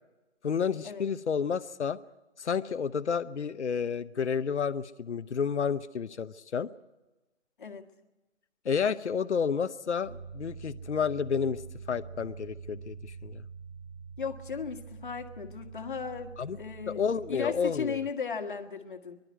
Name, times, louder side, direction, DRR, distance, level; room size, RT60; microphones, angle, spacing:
voice 1, 0.4-2.0 2.4-6.7 8.6-11.6 11.9-13.4 16.4-16.6 16.9-18.0, left 6 dB, 65° left, 12 dB, 0.8 m, -30 dB
sound 1, 10.0-17.9, right 5 dB, 30° right, 4.4 m, -45 dB
voice 2, 14.2-17.0 17.3-19.2, left 6 dB, 40° left, 7 dB, 1.7 m, -36 dB
24.5 x 12.0 x 9.4 m, 1.1 s
figure-of-eight pair, 150°, 37 cm